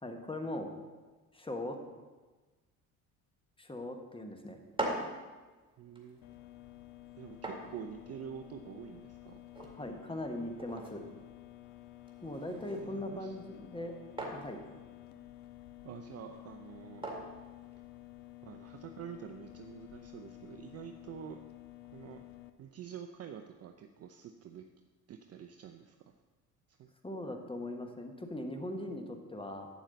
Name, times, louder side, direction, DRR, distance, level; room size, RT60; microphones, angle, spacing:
voice 1, 0.0-0.7 1.3-1.8 3.6-4.6 9.6-11.0 12.2-13.9 14.3-14.6 27.0-29.7, left 1 dB, 10° left, 4 dB, 1.3 m, -40 dB
sound 1, 4.5-18.4, right 1 dB, 10° right, 2.1 m, -45 dB
voice 2, 5.8-6.2 7.2-9.4 12.8-13.4 15.8-17.1 18.4-21.4 21.9-22.3 22.6-24.6 25.1-26.0 26.7-26.9, right 8 dB, 30° right, 6 dB, 0.6 m, -47 dB
sound 2, 6.2-22.5, left 17 dB, 60° left, 0.8 m, -52 dB
11.0 x 8.2 x 4.0 m, 1.3 s
figure-of-eight pair, 55°, 49 cm